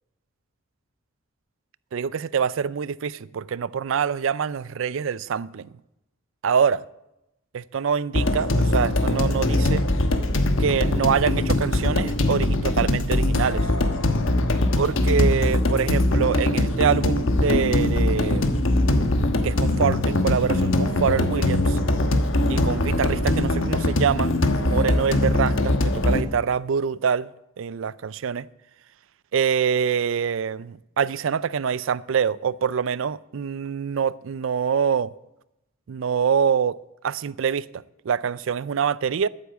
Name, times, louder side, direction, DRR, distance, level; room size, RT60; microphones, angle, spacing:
voice 1, 1.9-5.7 6.4-6.8 7.5-9.8 10.6-13.7 14.8-18.6 19.4-21.8 22.5-27.3 27.6-28.5 29.3-35.1 35.9-39.3, right 7 dB, 65° right, 0.4 m, -25 dB
sound 1, 8.1-26.2, left 1 dB, 65° left, 1.2 m, -22 dB
11.5 x 9.6 x 7.0 m
head